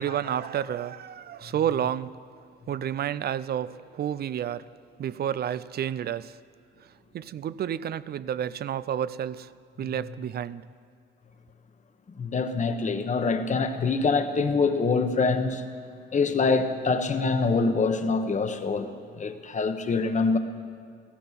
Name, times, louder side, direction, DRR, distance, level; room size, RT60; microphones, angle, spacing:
voice 1, 0.0-2.2 2.7-4.7 5.0-6.4 7.1-9.5 9.8-10.6, right 10 dB, 50° right, 0.5 m, -30 dB
voice 2, 12.1-15.7 16.1-20.4, left 4 dB, 40° left, 1.3 m, -25 dB
16.0 x 15.5 x 5.9 m
cardioid pair, 90°, 20 cm